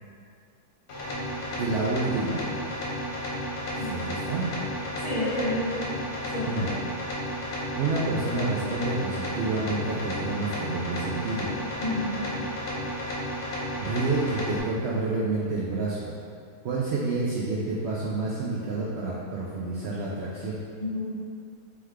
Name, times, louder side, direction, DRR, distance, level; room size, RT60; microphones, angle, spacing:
sound 1, 0.9-14.6, equal, 80° left, 1.3 m, -33 dB
voice 1, 1.6-2.4 3.7-4.5 6.5-6.7 7.8-11.5 13.8-16.1 16.6-20.6, right 3 dB, 75° right, -5 dB, 0.6 m, -29 dB
voice 2, 5.0-5.7 6.3-6.6 11.8-12.3 20.8-21.0, left 1 dB, 25° left, -12 dB, 1.1 m, -29 dB
3.5 x 3.2 x 3.4 m, 2.3 s
omnidirectional pair, 1.7 m